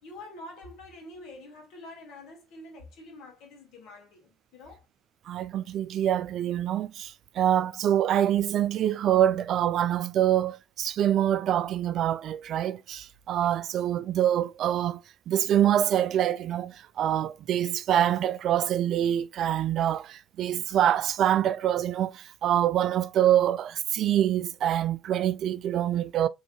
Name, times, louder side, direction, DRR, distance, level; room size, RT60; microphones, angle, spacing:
voice 1, 0.0-4.8, left 2 dB, 70° left, 1.5 m, -46 dB
voice 2, 5.3-15.0 15.3-26.3, right 11 dB, 60° right, 0.3 m, -25 dB
3.7 x 3.1 x 2.3 m
hypercardioid pair, 55°, 0 cm